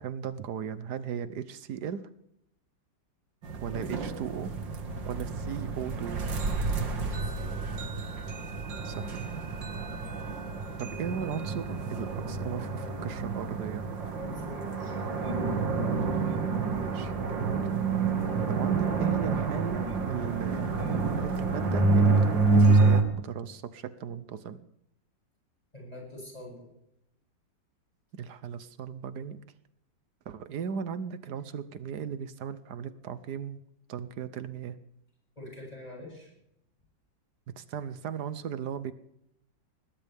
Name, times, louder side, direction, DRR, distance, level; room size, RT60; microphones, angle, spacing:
voice 1, 0.0-2.1 3.6-4.5 5.0-6.2 8.8-9.4 10.8-13.9 16.6-17.7 18.5-20.8 21.1-24.6 28.2-29.4 30.3-33.6 33.9-34.8 37.5-38.9, right 8 dB, 65° right, 13 dB, 1.3 m, -37 dB
sound 1, 3.4-23.0, right 4 dB, 85° right, 2.7 m, -28 dB
voice 2, 7.0-7.6 14.2-15.2 25.7-26.7 35.4-36.3, left 1 dB, 20° left, -2 dB, 7.9 m, -45 dB
21.0 x 19.0 x 3.6 m, 0.80 s
omnidirectional pair, 2.0 m